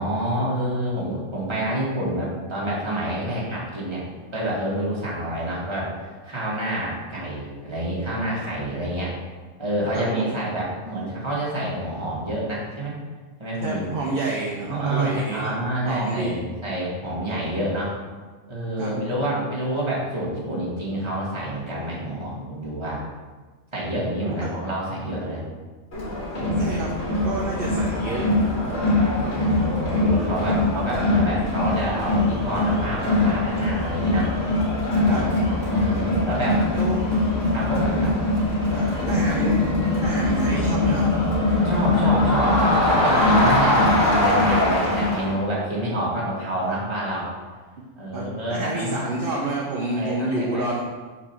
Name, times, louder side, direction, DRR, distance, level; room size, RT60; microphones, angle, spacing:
voice 1, 0.0-4.0 4.3-9.1 9.6-12.9 13.4-13.9 14.7-17.9 18.5-23.0 23.7-25.4 29.1-34.3 35.1-36.6 37.5-38.1 41.6-47.3 48.0-49.0 49.9-50.8, right 1 dB, 20° right, -6 dB, 1.7 m, -28 dB
voice 2, 9.9-10.4 13.6-15.6 15.9-16.4 18.8-18.9 24.3-24.5 26.6-27.0 27.2-28.8 35.1-35.3 36.7-37.2 38.7-39.6 40.0-41.1 48.1-50.8, right 2 dB, 50° right, -2 dB, 0.9 m, -29 dB
Crowd, 25.9-45.3, left 2 dB, 75° left, 2.3 m, -22 dB
4.8 x 4.3 x 5.8 m, 1.4 s
omnidirectional pair, 1.3 m